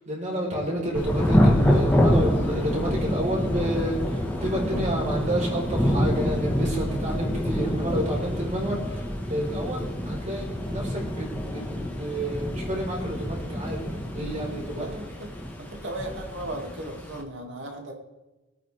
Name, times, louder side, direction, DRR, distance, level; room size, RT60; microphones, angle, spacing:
voice 1, 0.0-14.9, right 1 dB, 35° right, -3 dB, 4.5 m, -30 dB
Thunder / Rain, 0.9-17.2, equal, 10° left, 1.7 m, -26 dB
voice 2, 14.2-15.3 15.6-17.9, right 1 dB, 60° right, 1 dB, 2.7 m, -37 dB
23.0 x 9.1 x 3.6 m, 1.1 s
head